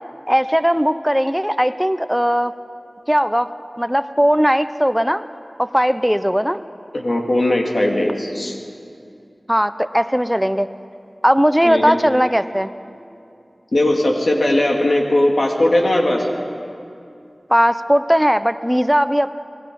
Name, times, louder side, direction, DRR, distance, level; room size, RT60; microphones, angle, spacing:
voice 1, 0.3-2.5 3.1-3.5 3.8-5.2 5.6-6.6 9.5-10.7 11.2-12.7 17.5-19.3, equal, 5° right, 11 dB, 0.8 m, -18 dB
voice 2, 6.9-8.6 11.6-12.0 13.7-16.3, left 1 dB, 75° left, 0 dB, 2.7 m, -18 dB
28.0 x 20.0 x 5.4 m, 2.5 s
wide cardioid pair, 45°, 0 cm